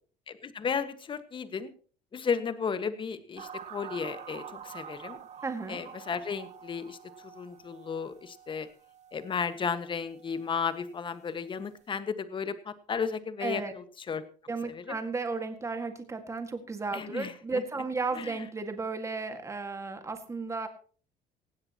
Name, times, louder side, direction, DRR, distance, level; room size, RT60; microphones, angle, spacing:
voice 1, 0.3-1.7 2.1-5.2 5.7-8.7 9.1-14.2 14.7-14.9 16.9-17.6 18.2-18.3, left 6 dB, 35° left, 11 dB, 1.5 m, -34 dB
sound 1, 3.4-10.6 10.9-11.2, right 8 dB, 50° right, 2.0 m, -47 dB
voice 2, 5.4-5.8 13.4-13.7 14.5-20.7, right 4 dB, 20° right, 7 dB, 1.9 m, -34 dB
17.5 x 16.0 x 3.0 m, 0.41 s
cardioid pair, 125°, 15 cm